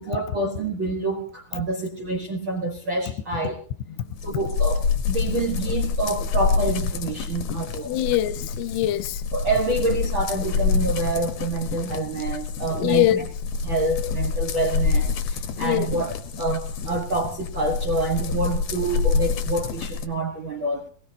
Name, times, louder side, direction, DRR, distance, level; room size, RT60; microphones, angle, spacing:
voice 1, 0.0-3.6 4.2-8.0 9.3-13.2 13.6-20.9, right 2 dB, 70° right, 1.1 m, -27 dB
sound 1, 4.2-20.1, left 5 dB, 70° left, 1.7 m, -27 dB
voice 2, 7.9-9.2 12.7-13.2 15.6-15.9, left 14 dB, 85° left, 2.9 m, -23 dB
19.5 x 18.0 x 2.8 m
omnidirectional pair, 4.7 m